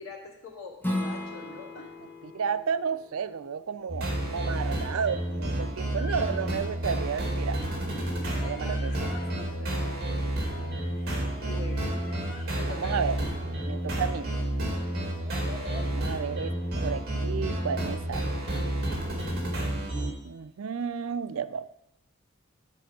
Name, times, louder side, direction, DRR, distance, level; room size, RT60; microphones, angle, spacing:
voice 1, 0.0-1.9 8.4-8.7 9.1-9.8 11.4-11.9 12.6-12.9, left 3 dB, 80° left, -3 dB, 2.4 m, -43 dB
Strum, 0.8-6.0, left 1 dB, 10° left, 1.1 m, -38 dB
voice 2, 2.0-7.6 8.3-9.1 12.7-13.2 13.7-14.3 15.9-18.4 20.2-21.7, right 6 dB, 80° right, 14 dB, 0.4 m, -32 dB
sound 1, 3.9-20.1, right 1 dB, 50° right, 2.1 m, -30 dB
sound 2, 5.9-7.4 7.8-10.5 10.8-13.8 14.2-16.0, left 2 dB, 55° left, 3.4 m, -48 dB
11.5 x 4.5 x 6.0 m, 0.84 s
head